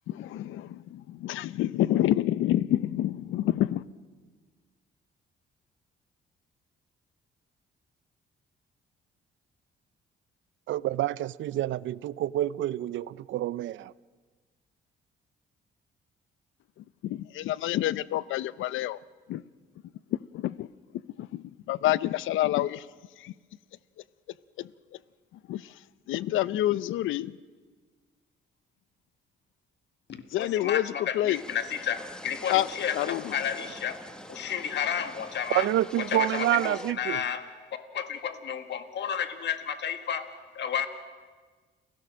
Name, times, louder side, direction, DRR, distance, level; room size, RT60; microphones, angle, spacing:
voice 1, 0.1-3.8 17.0-19.0 19.3-19.4 20.3-20.7 21.2-22.8 23.2-23.3 24.6-24.7 25.5-25.6 26.1-27.3 30.3-30.8 31.1-31.4 32.5-32.7 32.9-33.2, left 14 dB, 80° left, 0.6 m, -27 dB
voice 2, 10.7-13.9 35.5-37.2, right 13 dB, 75° right, 0.5 m, -28 dB
voice 3, 30.1-34.0 34.3-35.7 36.0-37.5 37.9-40.9, left 8 dB, 60° left, 1.7 m, -32 dB
sound 1, 31.3-36.9, equal, 5° left, 1.3 m, -44 dB
30.0 x 17.0 x 6.3 m
cardioid pair, 90°, 20 cm